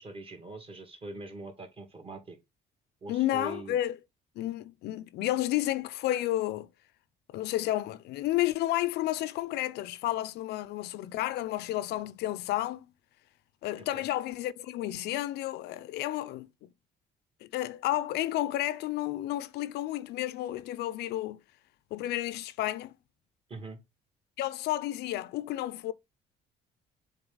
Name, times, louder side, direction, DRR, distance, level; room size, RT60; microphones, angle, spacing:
voice 1, 0.0-2.4 3.0-3.8 13.9-14.0 23.5-23.8, right 2 dB, 35° right, 2.3 m, -42 dB
voice 2, 3.1-4.0 4.4-6.7 7.3-12.9 13.6-16.7 17.4-21.4 21.9-22.9 24.4-25.9, left 14 dB, 75° left, 0.5 m, -31 dB
7.1 x 3.8 x 3.9 m
cardioid pair, 110°, 17 cm